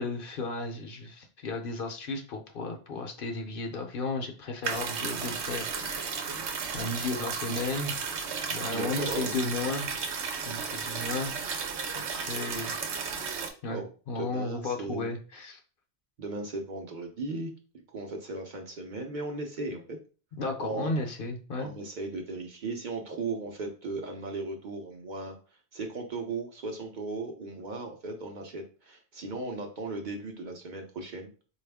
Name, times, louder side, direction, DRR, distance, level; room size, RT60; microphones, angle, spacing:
voice 1, 0.0-7.9 8.5-9.9 10.4-11.7 11.9-12.7 13.6-13.8 14.1-15.6 20.3-21.7, left 3 dB, 60° left, 4 dB, 0.7 m, -34 dB
sound 1, 4.6-13.5, right 6 dB, 90° right, 0.9 m, -34 dB
voice 2, 8.7-9.3 13.7-13.8 14.1-15.1 16.2-17.5 17.9-20.0 20.6-20.9 21.6-25.4 25.7-31.3, right 3 dB, 55° right, 2 dB, 0.7 m, -36 dB
4.1 x 2.3 x 3.4 m, 0.36 s
omnidirectional pair, 1.1 m